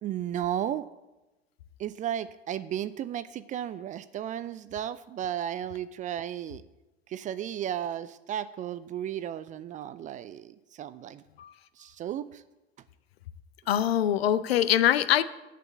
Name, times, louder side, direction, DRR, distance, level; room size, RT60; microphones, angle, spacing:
voice 1, 0.0-0.8 1.8-6.6 7.1-11.2 11.8-12.4, right 10 dB, 25° right, 16 dB, 0.4 m, -34 dB
voice 2, 13.7-15.2, left 11 dB, 65° left, 15 dB, 0.8 m, -23 dB
8.5 x 7.5 x 8.6 m, 1.0 s
figure-of-eight pair, 80°, 33 cm